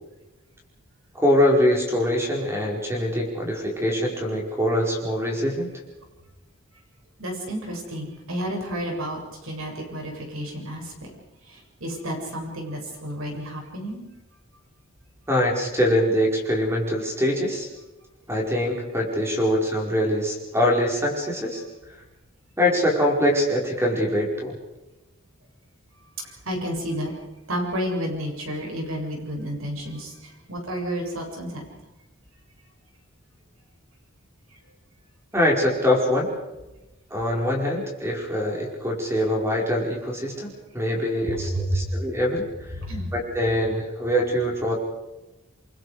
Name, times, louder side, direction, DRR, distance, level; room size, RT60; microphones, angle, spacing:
voice 1, 1.1-5.7 15.3-17.7 18.3-21.6 22.6-24.6 35.3-36.3 37.1-42.5 43.1-44.7, left 1 dB, 10° right, -1 dB, 5.1 m, -23 dB
voice 2, 7.2-11.1 11.5-14.0 26.2-27.1 27.5-31.6 41.3-41.9 42.7-43.1, equal, 80° right, 1 dB, 7.3 m, -31 dB
29.0 x 23.5 x 5.0 m, 1.0 s
head